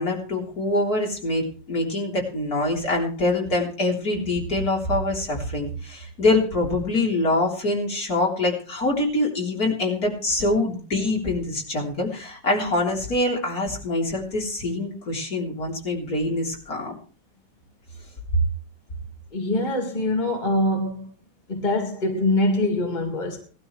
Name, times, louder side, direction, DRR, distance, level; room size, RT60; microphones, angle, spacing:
voice 1, 0.0-16.9, left 2 dB, 60° left, 4.1 m, -24 dB
voice 2, 19.3-21.1 21.5-23.4, left 1 dB, 25° left, 2.1 m, -24 dB
19.0 x 12.5 x 3.2 m
omnidirectional pair, 1.8 m